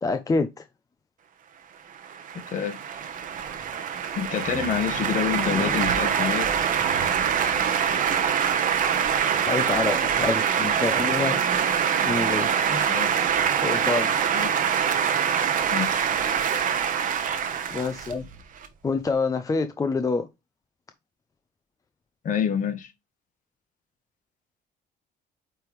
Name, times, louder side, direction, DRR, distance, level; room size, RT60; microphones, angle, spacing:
voice 1, 0.0-0.6 5.5-5.7 9.5-11.4 12.0-12.8 13.6-14.1 17.7-18.2 18.8-20.3, left 4 dB, 20° left, 0.6 m, -27 dB
sound 1, 2.0-18.7, right 8 dB, 50° right, 1.0 m, -24 dB
voice 2, 2.5-2.8 4.1-6.5 12.8-13.2 14.3-14.5 15.7-16.1 22.2-22.9, left 8 dB, 50° left, 1.4 m, -27 dB
8.8 x 3.4 x 3.1 m
cardioid pair, 110°, 17 cm